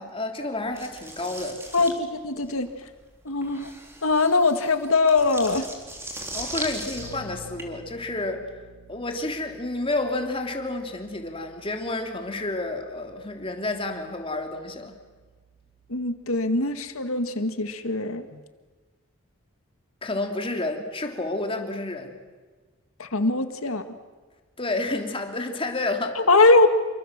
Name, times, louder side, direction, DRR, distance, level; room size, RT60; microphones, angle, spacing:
voice 1, 0.0-1.6 6.3-8.4 8.9-14.9 20.0-22.1 24.6-26.2, left 2 dB, 25° left, 4 dB, 3.1 m, -30 dB
sound 1, 0.8-7.6, right 1 dB, 10° right, 3.8 m, -38 dB
voice 2, 1.7-2.7 3.3-3.7 4.0-5.7 15.9-18.4 23.0-23.8 26.2-26.7, left 3 dB, 75° left, 8 dB, 1.9 m, -22 dB
Bass guitar, 7.0-16.8, right 1 dB, 75° right, 6.8 m, -51 dB
28.5 x 25.0 x 7.5 m, 1.4 s
head